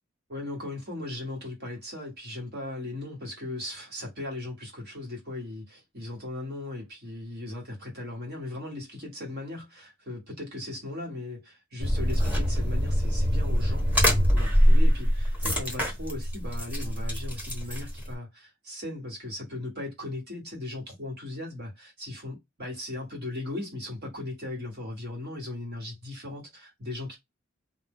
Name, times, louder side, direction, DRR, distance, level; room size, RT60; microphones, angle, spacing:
voice 1, 0.3-27.2, left 2 dB, 55° right, 1.5 m, -38 dB
sound 1, 11.8-18.1, equal, 10° right, 0.9 m, -24 dB
2.6 x 2.0 x 3.5 m
head